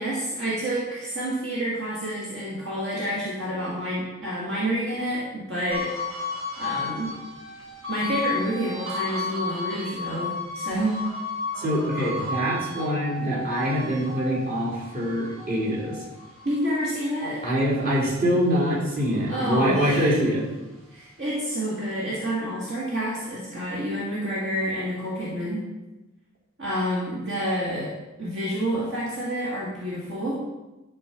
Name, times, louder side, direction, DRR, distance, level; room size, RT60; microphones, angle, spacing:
voice 1, 0.0-6.1 6.6-7.1 7.9-11.0 16.4-17.4 19.3-20.1 20.9-25.6 26.6-27.9 28.2-30.4, equal, 60° right, -7 dB, 2.1 m, -28 dB
sound 1, 5.7-18.3 18.7-20.4, left 3 dB, 75° right, 3.0 m, -34 dB
voice 2, 11.6-15.9 17.4-20.5, equal, 40° right, -7 dB, 3.5 m, -24 dB
11.5 x 4.5 x 5.8 m, 1.0 s
head